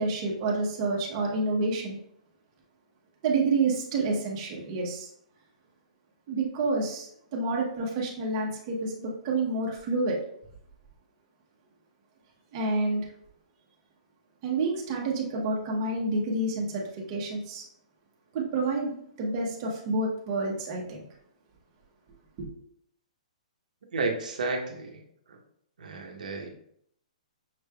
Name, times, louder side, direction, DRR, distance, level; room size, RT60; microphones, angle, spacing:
voice 1, 0.0-2.0 3.2-5.1 6.3-10.2 12.5-13.0 14.4-17.6 18.3-21.0 22.4-22.5, right 3 dB, 30° right, -2 dB, 0.8 m, -29 dB
voice 2, 23.9-25.0 25.3-25.4 25.8-26.5, right 3 dB, 80° right, 2 dB, 0.8 m, -32 dB
5.8 x 3.1 x 2.3 m, 0.70 s
hypercardioid pair, 165°, 4 cm